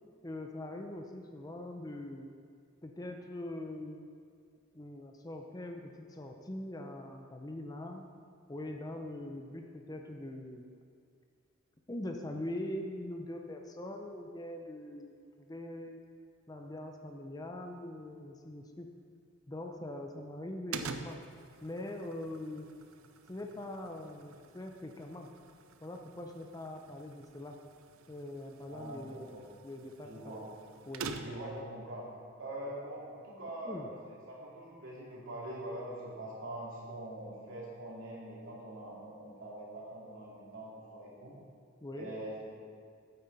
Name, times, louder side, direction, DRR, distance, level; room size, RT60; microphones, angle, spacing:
voice 1, 0.2-2.3 2.8-4.1 4.7-8.1 8.5-10.7 11.9-16.0 16.5-18.9 19.5-21.2 21.6-22.7 23.3-25.3 25.8-27.6 28.1-30.3 30.9-31.1 33.7-33.9 41.8-42.1, left 1 dB, 20° left, 3 dB, 0.5 m, -42 dB
sound 1, 20.7-31.6, right 5 dB, 85° right, 0.5 m, -47 dB
voice 2, 28.7-29.4 30.0-30.4 31.2-32.1 32.4-41.4 41.9-42.4, right 1 dB, 65° right, -5 dB, 2.6 m, -43 dB
9.1 x 8.6 x 4.0 m, 2.2 s
head